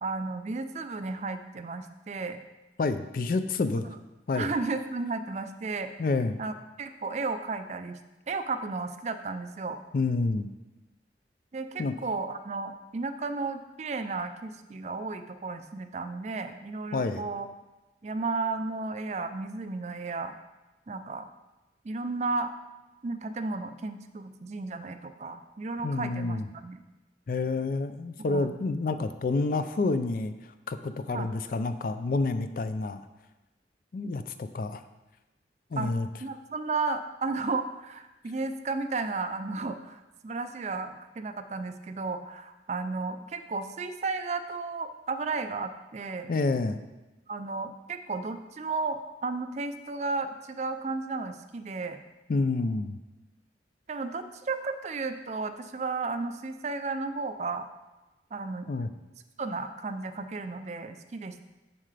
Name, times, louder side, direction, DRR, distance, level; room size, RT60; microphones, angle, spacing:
voice 1, 0.0-2.4 3.8-4.0 4.4-5.9 6.4-8.0 8.3-9.8 11.5-17.5 18.0-20.3 20.9-21.3 21.8-22.5 23.0-26.8 28.3-28.5 31.1-31.3 35.7-35.9 36.2-46.3 47.3-52.0 53.9-57.7 58.3-58.7 59.4-61.4, right 3 dB, 40° right, 9 dB, 0.4 m, -33 dB
voice 2, 2.8-3.9 4.3-4.5 6.0-6.4 9.9-10.5 11.8-11.9 16.9-17.2 25.8-26.5 27.3-33.1 33.9-34.8 35.7-36.1 46.3-46.8 52.3-53.0 58.7-58.9, left 3 dB, 50° left, 10 dB, 0.4 m, -28 dB
7.3 x 6.6 x 3.3 m, 1.1 s
head